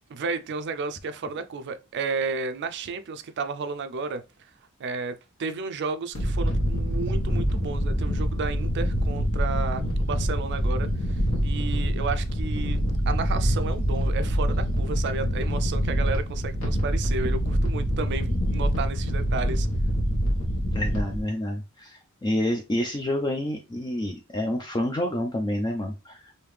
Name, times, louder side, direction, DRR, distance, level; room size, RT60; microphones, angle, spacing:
voice 1, 0.1-4.2 4.8-11.2 11.4-19.7, right 4 dB, 55° right, 0.4 m, -32 dB
sound 1, 6.1-21.2, equal, 65° left, 1.3 m, -25 dB
voice 2, 20.7-26.3, left 1 dB, 20° left, 0.4 m, -28 dB
3.3 x 2.7 x 3.2 m
head